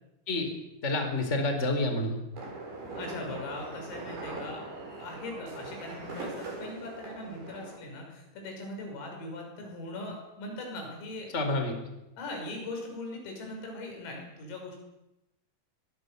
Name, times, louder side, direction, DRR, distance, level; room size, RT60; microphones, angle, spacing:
voice 1, 0.8-2.2 11.3-11.7, left 2 dB, 15° left, 5 dB, 3.7 m, -28 dB
sound 1, 2.4-7.8, right 2 dB, 50° right, 8.4 m, -41 dB
voice 2, 2.9-4.6 5.0-11.3 12.2-14.8, left 2 dB, 90° left, 2 dB, 8.7 m, -40 dB
23.5 x 20.5 x 7.0 m, 0.93 s
omnidirectional pair, 5.8 m